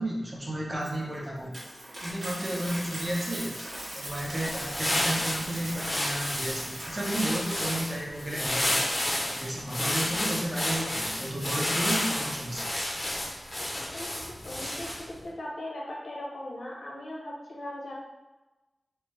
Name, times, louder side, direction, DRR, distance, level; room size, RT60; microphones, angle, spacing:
voice 1, 0.0-1.5 2.0-3.6 3.9-8.9 9.3-12.7, right 1 dB, 25° right, -3 dB, 0.6 m, -33 dB
Coin (dropping), 0.8-8.3, right 1 dB, 45° right, 1.1 m, -40 dB
sound 1, 4.1-15.2, left 1 dB, 40° left, 0.6 m, -31 dB
voice 2, 13.9-17.9, left 1 dB, 70° left, -3 dB, 0.8 m, -39 dB
3.2 x 2.1 x 3.1 m, 1.1 s
wide cardioid pair, 80°, 0 cm